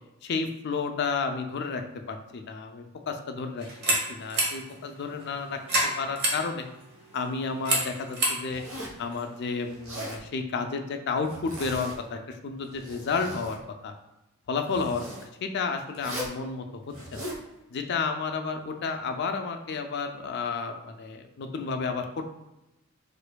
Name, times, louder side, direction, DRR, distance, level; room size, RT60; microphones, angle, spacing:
voice 1, 0.2-1.8 2.1-6.7 7.1-8.6 9.0-13.6 13.8-13.9 14.5-15.0 15.4-17.3 17.7-22.2, left 4 dB, 50° left, 5 dB, 0.4 m, -31 dB
sound 1, 3.6-9.9, right 1 dB, 50° right, 0.9 m, -31 dB
Zipper (clothing), 8.5-9.0 9.7-10.2 11.2-12.0 12.6-13.6 14.7-15.2 15.9-16.4 16.9-17.4, equal, 85° right, 0.9 m, -39 dB
4.3 x 2.6 x 2.2 m, 0.93 s
head